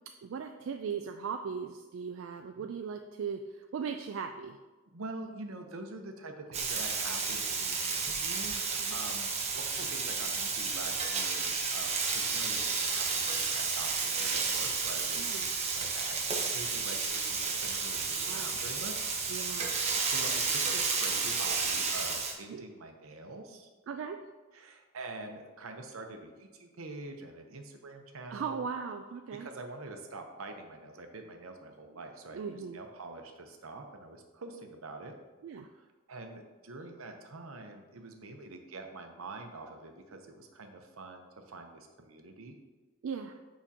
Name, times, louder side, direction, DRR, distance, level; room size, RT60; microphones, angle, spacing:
voice 1, 0.2-4.6 15.2-15.5 18.3-18.6 19.3-19.8 22.5-22.6 23.9-24.2 28.3-29.5 32.3-32.8 35.4-35.7 43.0-43.4, right 6 dB, 65° right, 5 dB, 0.3 m, -38 dB
voice 2, 4.9-15.4 15.7-16.2 16.5-19.1 20.0-23.7 24.5-28.7 29.4-35.1 35.5-42.6, right 2 dB, 85° right, 4 dB, 0.8 m, -45 dB
Frying (food), 6.5-22.3, right 4 dB, 30° right, 0.7 m, -32 dB
7.2 x 5.1 x 2.8 m, 1.3 s
head